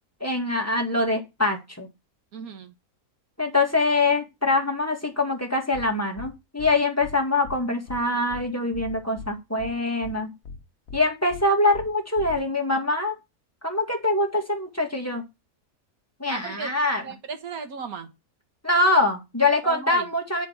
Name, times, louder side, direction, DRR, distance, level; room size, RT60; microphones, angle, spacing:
voice 1, 0.2-1.9 3.4-10.3 10.9-13.2 13.6-15.2 16.2-17.0 18.6-20.5, left 2 dB, 10° left, 2.0 m, -24 dB
voice 2, 2.3-2.7 16.3-16.7 17.0-18.1 19.6-20.1, right 5 dB, 80° right, 1.7 m, -35 dB
sound 1, 5.7-5.9 6.2-6.3 6.6-6.7 7.0-7.2 7.4-7.6 7.9-8.0 8.3-8.4 8.7-9.3 9.6-9.7 10.0-10.2 10.4-10.6 10.9-11.0 11.3-11.4 11.7-11.9 12.2-12.4, left 4 dB, 70° left, 1.5 m, -39 dB
9.5 x 4.5 x 5.9 m
omnidirectional pair, 1.5 m